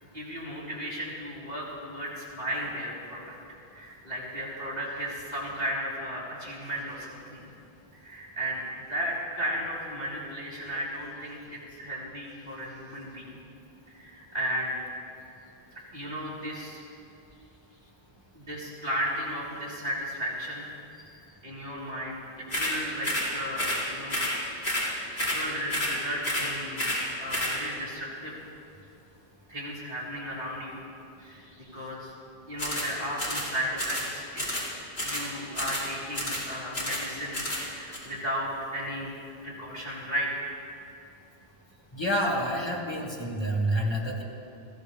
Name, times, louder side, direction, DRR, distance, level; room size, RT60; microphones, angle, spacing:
voice 1, 0.1-3.3 3.7-7.4 7.9-8.6 8.9-13.4 13.9-14.8 15.9-16.8 18.3-20.7 21.4-22.2 22.5-24.2 24.9-28.3 29.5-30.8 31.2-32.1 32.5-34.6 35.0-39.1 39.4-40.5, equal, 40° right, -8 dB, 4.3 m, -35 dB
sound 1, 22.5-22.8 23.0-23.3 23.6-23.8 24.1-24.4 24.6-24.9 25.2-25.4 25.7-26.0 26.2-26.5 26.8-27.0 27.3-27.6 32.6-32.9 33.2-33.5 33.8-34.1 34.4-34.7 35.0-35.3 35.6-35.9 36.1-36.5 36.7-37.1 37.3-37.6 37.9-38.0, left 1 dB, 75° left, 4.2 m, -30 dB
voice 2, 41.9-44.2, equal, 25° left, -2 dB, 2.1 m, -28 dB
22.0 x 15.5 x 3.5 m, 2.8 s
omnidirectional pair, 1.1 m